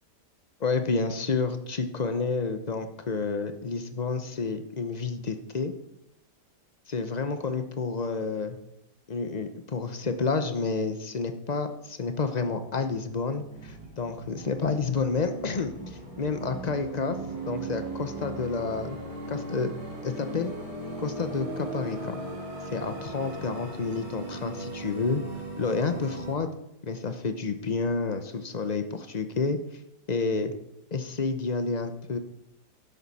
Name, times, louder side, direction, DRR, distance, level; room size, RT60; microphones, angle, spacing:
voice 1, 0.6-5.7 6.9-8.6 9.1-17.2 17.5-19.0 19.3-19.7 20.0-20.5 21.0-22.2 22.7-25.2 25.6-26.5 26.8-29.8 30.1-30.5 30.9-32.2, left 4 dB, 40° left, 8 dB, 0.6 m, -29 dB
sound 1, 12.3-26.3, right 2 dB, 60° right, 3.4 m, -38 dB
12.0 x 10.5 x 4.2 m, 0.81 s
omnidirectional pair, 1.8 m